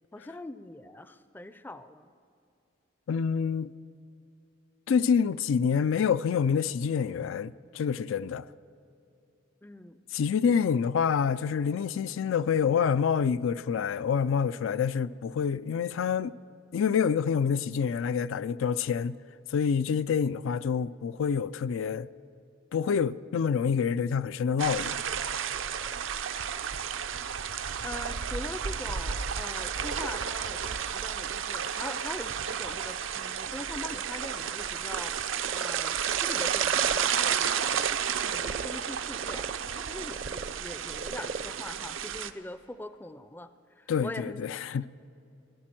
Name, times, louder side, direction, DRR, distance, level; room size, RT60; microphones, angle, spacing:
voice 1, 0.1-2.1 9.6-10.0 25.9-26.1 27.8-37.5 38.2-43.5 43.8-44.4, left 1 dB, 10° left, 0.4 m, -42 dB
voice 2, 3.1-3.7 4.9-8.4 10.1-16.4 16.7-19.2 19.5-22.1 22.7-25.0 43.9-44.9, left 6 dB, 85° left, 0.4 m, -27 dB
sound 1, 24.6-42.3, right 8 dB, 85° right, 0.6 m, -32 dB
Frog, 25.2-37.9 38.2-42.9, right 4 dB, 40° right, 0.5 m, -42 dB
16.0 x 12.0 x 7.5 m
head